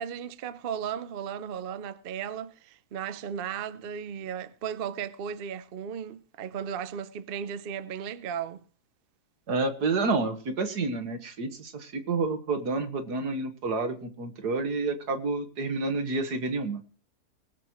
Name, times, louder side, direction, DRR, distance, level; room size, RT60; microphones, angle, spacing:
voice 1, 0.0-8.6, right 8 dB, 50° right, 0.7 m, -35 dB
voice 2, 9.5-16.8, right 3 dB, 85° right, 2.0 m, -29 dB
19.5 x 13.0 x 3.1 m
omnidirectional pair, 1.7 m